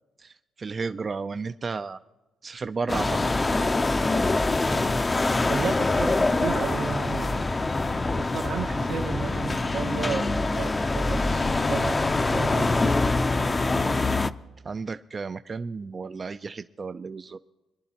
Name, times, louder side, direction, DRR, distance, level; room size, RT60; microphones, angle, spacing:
voice 1, 0.2-2.0 2.4-3.2 14.7-17.4, right 4 dB, 35° right, 10 dB, 0.3 m, -33 dB
sound 1, 2.9-14.3, left 2 dB, 25° left, 0.5 m, -24 dB
voice 2, 5.5-7.4 8.1-12.9, right 6 dB, 80° right, 3 dB, 1.3 m, -33 dB
24.5 x 11.0 x 2.9 m, 1.1 s
cardioid pair, 90°, 0 cm